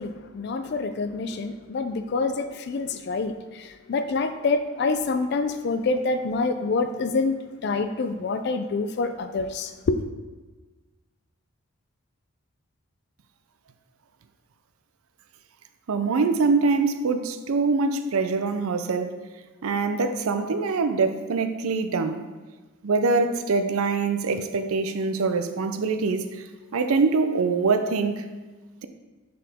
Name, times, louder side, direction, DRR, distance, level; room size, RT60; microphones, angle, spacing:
voice 1, 0.0-10.0, left 3 dB, 50° left, 0.3 m, -27 dB
voice 2, 15.9-19.1 19.6-22.3 22.8-26.5 26.7-28.2, right 4 dB, 80° right, 0.5 m, -24 dB
6.0 x 4.9 x 3.5 m
head